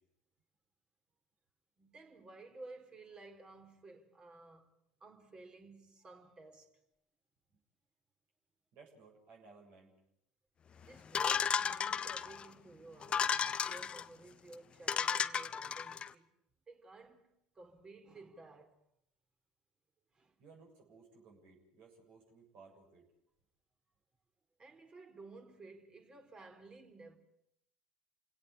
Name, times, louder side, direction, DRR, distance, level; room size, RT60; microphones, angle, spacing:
voice 1, 1.8-4.7 5.0-6.7 10.8-16.3 16.7-18.8 20.1-20.4 24.6-27.2, right 3 dB, 25° right, 4.0 m, -54 dB
voice 2, 8.7-9.9 20.4-23.0, right 4 dB, 55° right, 7.4 m, -59 dB
sound 1, 11.1-12.5 13.0-14.0 14.5-14.6 14.9-16.1, left 7 dB, 30° left, 0.9 m, -34 dB
29.0 x 17.5 x 8.9 m
figure-of-eight pair, 70°, 3 cm